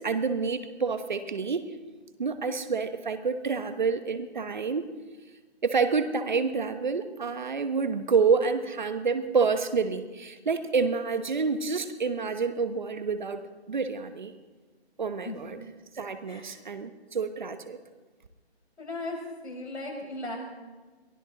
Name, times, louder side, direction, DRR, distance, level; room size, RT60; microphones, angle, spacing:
voice 1, 0.0-1.6 2.2-4.9 5.6-14.3 15.0-15.6 15.9-17.8, right 5 dB, 45° right, 9 dB, 1.2 m, -28 dB
voice 2, 18.8-19.2 19.4-20.4, left 2 dB, 90° left, -1 dB, 6.9 m, -36 dB
22.5 x 15.5 x 4.0 m, 1.3 s
hypercardioid pair, 170°, 33 cm